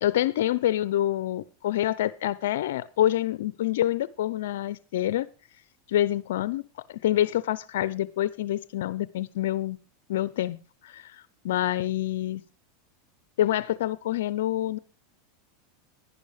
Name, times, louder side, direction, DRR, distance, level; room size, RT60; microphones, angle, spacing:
voice 1, 0.0-5.3 5.9-9.8 10.1-10.6 10.8-12.4 13.4-14.8, left 13 dB, 75° left, 18 dB, 0.6 m, -27 dB
11.0 x 10.5 x 5.0 m, 0.33 s
supercardioid pair, 120°, 0 cm